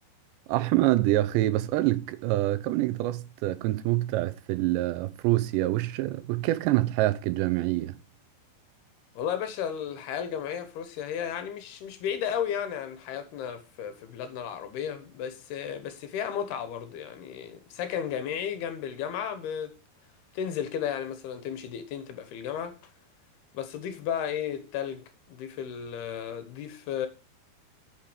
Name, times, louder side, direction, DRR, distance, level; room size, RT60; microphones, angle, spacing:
voice 1, 0.5-8.0, right 16 dB, 80° right, 2.9 m, -26 dB
voice 2, 9.2-19.8 20.3-22.8 23.5-27.1, left 8 dB, 75° left, 2.7 m, -34 dB
9.0 x 6.7 x 5.0 m
omnidirectional pair, 5.2 m